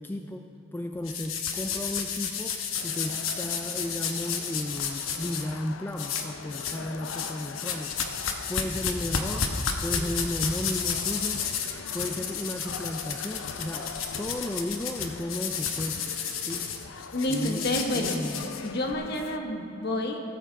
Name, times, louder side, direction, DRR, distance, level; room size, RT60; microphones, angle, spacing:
voice 1, 0.0-8.0 8.5-9.5 9.8-11.5 11.9-16.7 17.3-18.5, left 1 dB, 10° left, 4 dB, 0.3 m, -34 dB
sound 1, 1.0-5.4 6.0-6.8 7.0-18.9, left 6 dB, 90° left, 1.0 m, -32 dB
sound 2, 2.8-19.4, left 5 dB, 70° left, 0.4 m, -43 dB
voice 2, 17.1-18.2 18.6-20.2, left 1 dB, 55° left, 2 dB, 1.2 m, -29 dB
16.5 x 7.1 x 4.7 m, 2.7 s
head